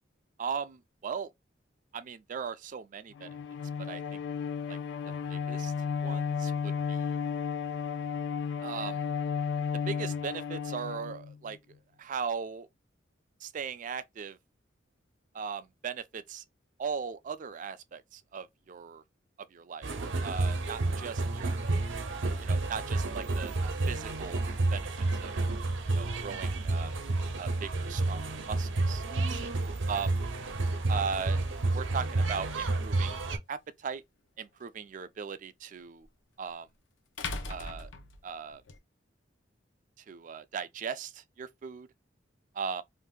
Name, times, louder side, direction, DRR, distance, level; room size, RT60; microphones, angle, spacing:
voice 1, 0.4-1.3 1.9-3.4 3.8-4.2 4.7-4.8 5.3-5.7 6.0-7.1 8.6-9.0 9.9-11.6 12.0-12.7 13.4-14.4 15.3-16.4 16.8-19.0 19.5-19.9 20.2-21.6 22.4-23.5 23.9-24.4 24.7-25.3 25.9-26.9 27.4-29.0 29.3-29.5 29.9-30.1 30.9-34.0 34.4-36.1 36.4-36.7 37.5-37.9 38.2-38.6 40.0-41.9 42.5-42.8, right 6 dB, 45° right, 0.3 m, -38 dB
Bowed string instrument, 3.1-11.6, left 6 dB, 65° left, 0.4 m, -33 dB
sound 1, 19.8-33.4, right 2 dB, 80° right, 0.6 m, -30 dB
sound 2, 33.3-33.4 36.0-36.1 37.2-38.8, left 3 dB, 85° left, 0.7 m, -38 dB
2.6 x 2.5 x 3.6 m
head